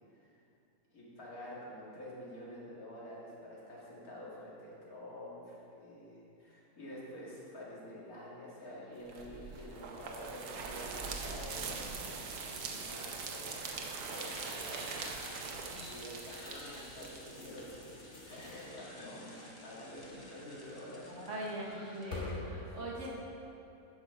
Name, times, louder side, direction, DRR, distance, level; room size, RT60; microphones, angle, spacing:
voice 1, 0.1-0.4 0.9-15.5 15.8-21.3 22.7-22.8, equal, 70° left, -6 dB, 2.5 m, -49 dB
sound 1, 8.9-22.5, left 2 dB, 50° left, 2.1 m, -50 dB
sound 2, 9.1-17.9, right 4 dB, 80° right, 1.4 m, -42 dB
sound 3, 14.1-22.4, left 2 dB, 30° left, 0.4 m, -56 dB
voice 2, 20.8-23.1, right 1 dB, 55° right, -4 dB, 1.8 m, -42 dB
9.7 x 5.9 x 5.7 m, 2.7 s
omnidirectional pair, 1.6 m